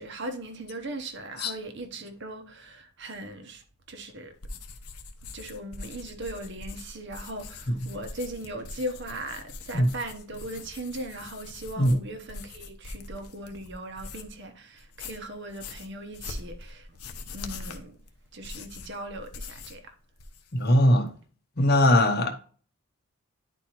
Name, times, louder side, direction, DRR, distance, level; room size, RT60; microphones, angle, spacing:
voice 1, 0.0-3.6 3.9-4.3 5.3-16.9 17.3-17.9 18.3-19.9, right 1 dB, 50° right, 0.9 m, -38 dB
sound 1, 4.4-14.4 14.8-19.9 20.1-20.7, left 3 dB, 90° left, 0.8 m, -43 dB
voice 2, 20.5-21.1 21.6-22.3, left 1 dB, 45° left, 0.9 m, -21 dB
10.0 x 4.4 x 2.9 m
head